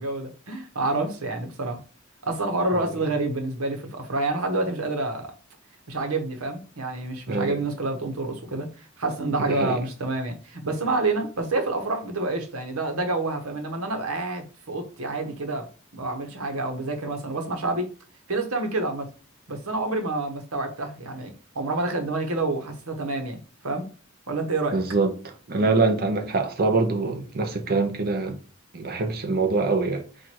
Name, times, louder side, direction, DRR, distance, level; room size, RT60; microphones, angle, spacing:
voice 1, 0.0-1.8 2.2-5.3 5.9-15.7 15.9-17.9 18.3-19.1 19.5-23.9 24.3-24.8, right 2 dB, 90° right, 1.1 m, -28 dB
voice 2, 7.3-7.6 9.4-9.8 24.7-25.1 25.5-28.4 28.7-30.0, right 3 dB, 45° right, 0.8 m, -24 dB
4.5 x 2.5 x 4.4 m
head